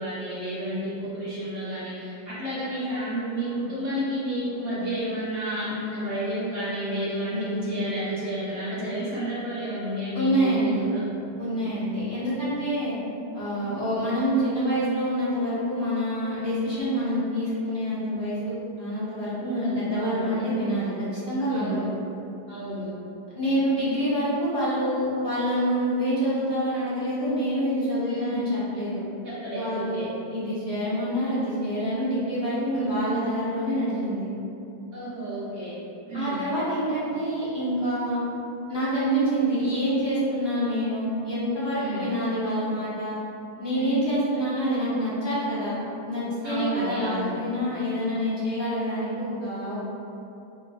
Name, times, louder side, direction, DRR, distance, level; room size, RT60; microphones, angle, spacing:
voice 1, 0.0-11.0 13.5-13.8 19.4-20.4 21.5-21.9 22.5-22.9 28.0-28.5 29.2-30.1 32.7-33.1 34.9-35.7 36.1-36.5 41.7-42.1 43.7-44.1 46.4-47.3, right 1 dB, 35° right, -12 dB, 1.5 m, -31 dB
voice 2, 7.3-7.8 10.1-10.8 11.4-12.9 13.3-21.9 23.3-29.0 29.5-30.0 30.3-34.3 36.1-38.2 38.7-43.2 43.6-45.7 46.0-49.8, equal, 15° left, -12 dB, 1.0 m, -27 dB
3.9 x 3.7 x 2.6 m, 2.8 s
omnidirectional pair, 1.9 m